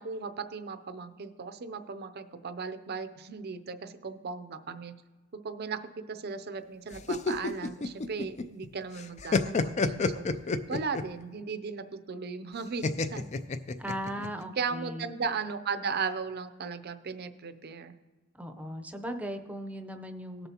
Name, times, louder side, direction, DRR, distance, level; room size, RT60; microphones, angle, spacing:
voice 1, 0.0-4.9 5.4-10.3 10.7-13.3 14.1-14.3 14.6-17.9, right 5 dB, 50° right, 10 dB, 0.6 m, -36 dB
sound 1, 6.9-8.7 9.0-11.2 12.8-14.3, left 3 dB, 35° left, 0.4 m, -29 dB
voice 2, 13.8-15.1 18.4-20.5, equal, 5° right, 5 dB, 0.7 m, -37 dB
18.0 x 6.9 x 2.9 m, 1.3 s
head